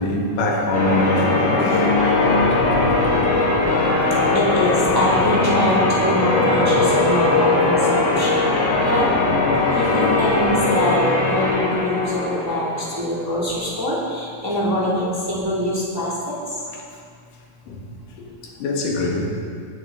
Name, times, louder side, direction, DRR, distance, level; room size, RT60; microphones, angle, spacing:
voice 1, 0.0-1.9 2.5-3.3 8.7-8.9 9.8-9.9 16.7-16.8 17.7-17.9 18.3-19.4, left 1 dB, 85° left, -1 dB, 3.3 m, -25 dB
Church bell, 0.7-13.0, left 2 dB, 55° left, 2.9 m, -19 dB
voice 2, 4.3-8.5 8.8-9.1 9.7-16.4, left 1 dB, 5° right, -7 dB, 2.2 m, -23 dB
18.5 x 9.7 x 3.9 m, 2.2 s
omnidirectional pair, 3.7 m